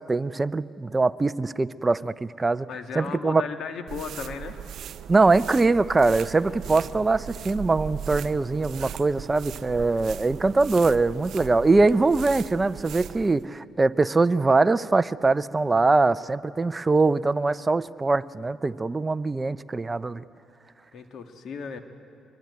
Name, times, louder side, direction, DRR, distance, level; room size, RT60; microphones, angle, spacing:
voice 1, 0.0-2.7 3.0-3.4 5.1-20.2, right 3 dB, 25° right, 13 dB, 0.6 m, -22 dB
voice 2, 2.7-4.6 20.9-21.8, left 6 dB, 65° left, 6 dB, 1.8 m, -35 dB
sound 1, 3.9-13.4, right 10 dB, 70° right, 0.5 m, -38 dB
sound 2, 6.4-17.4, right 3 dB, 35° left, 4.2 m, -53 dB
23.0 x 22.5 x 9.6 m, 2.6 s
cardioid pair, 90°, 0 cm